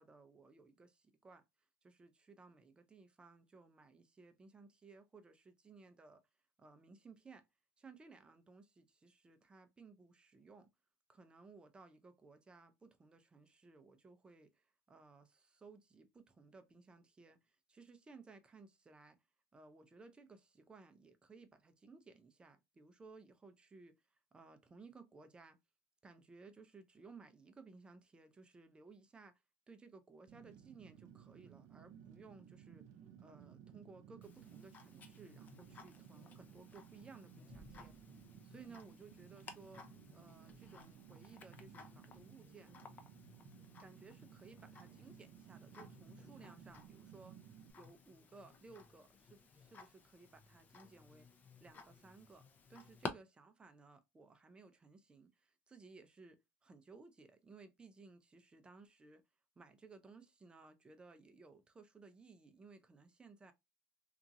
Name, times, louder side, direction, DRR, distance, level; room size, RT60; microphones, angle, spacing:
voice 1, 0.0-1.4 1.8-6.2 6.6-7.5 7.8-10.7 11.1-19.2 19.5-24.0 24.3-25.6 26.0-29.4 29.7-32.9 33.2-37.9 38.4-42.8 43.8-51.3 51.6-59.2 59.6-63.5, right 4 dB, 15° right, 0.5 m, -59 dB
Fire, 30.3-47.7, right 9 dB, 65° right, 0.5 m, -58 dB
Tick-tock, 34.2-53.1, left 4 dB, 30° left, 0.6 m, -55 dB
2.9 x 2.4 x 2.5 m
cardioid pair, 130°, 6 cm